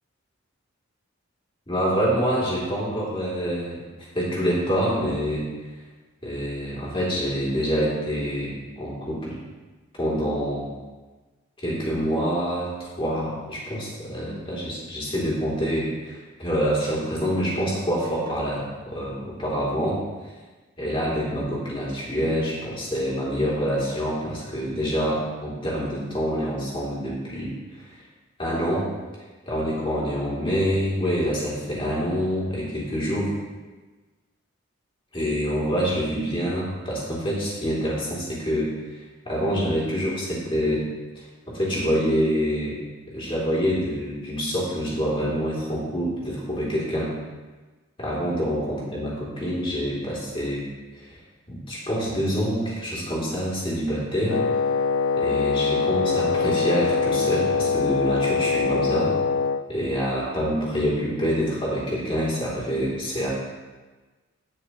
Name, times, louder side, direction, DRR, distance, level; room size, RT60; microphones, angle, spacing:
voice 1, 1.7-3.8 4.1-5.4 6.2-9.4 10.0-10.7 11.6-20.0 20.8-27.9 28.4-28.9 29.5-33.3 35.1-40.9 41.1-42.8 43.1-47.1 48.0-50.6 50.9-51.2 51.5-54.4 55.2-59.1 59.7-63.3, equal, 25° left, -7 dB, 3.1 m, -26 dB
Wind instrument woodwind instrument, 54.3-59.6, left 5 dB, 80° left, 0.4 m, -23 dB
18.0 x 6.2 x 3.1 m, 1.3 s
head